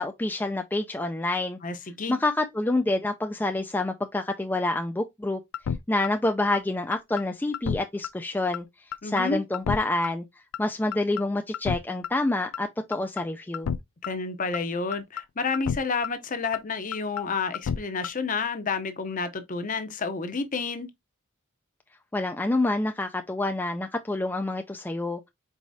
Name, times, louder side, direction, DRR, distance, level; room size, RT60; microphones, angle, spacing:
voice 1, 0.0-1.6 2.1-5.4 5.9-8.7 9.0-10.2 10.6-13.7 22.1-25.2, left 2 dB, 10° left, 0.3 m, -27 dB
voice 2, 1.6-2.2 9.0-9.4 14.0-20.9, left 4 dB, 40° left, 0.7 m, -30 dB
sound 1, 5.5-5.8 6.0-6.1 6.5-6.6 6.9-7.2 7.5-7.8 8.0-8.1 8.5-8.6 8.9-9.2 9.5-9.8 10.0-10.1 10.5-10.6 10.9-11.2 11.5-11.8 12.0-12.1 12.5-12.6 12.9-13.2 13.5-13.8 14.0-14.1 14.5-14.6 14.9-15.2 15.5-15.8 16.0-16.1 16.5-16.6 16.9-17.2 17.5-17.8 18.0-18.1, left 7 dB, 85° left, 0.4 m, -30 dB
4.8 x 4.2 x 2.6 m
head